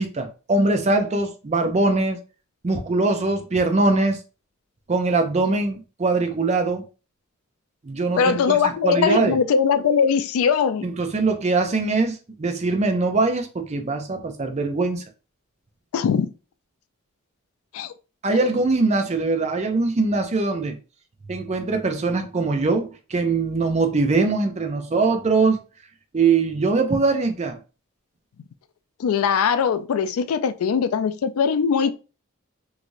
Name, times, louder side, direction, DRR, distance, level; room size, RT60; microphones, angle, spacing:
voice 1, 0.0-2.2 2.6-4.2 4.9-6.8 7.8-8.6 8.8-9.4 10.8-15.0 18.2-20.8 21.3-25.6 26.1-27.6, right 3 dB, 30° right, 0.5 m, -22 dB
voice 2, 8.2-10.9 15.9-16.3 17.7-17.9 29.0-32.0, left 6 dB, 90° left, 0.3 m, -21 dB
3.1 x 2.5 x 2.6 m
head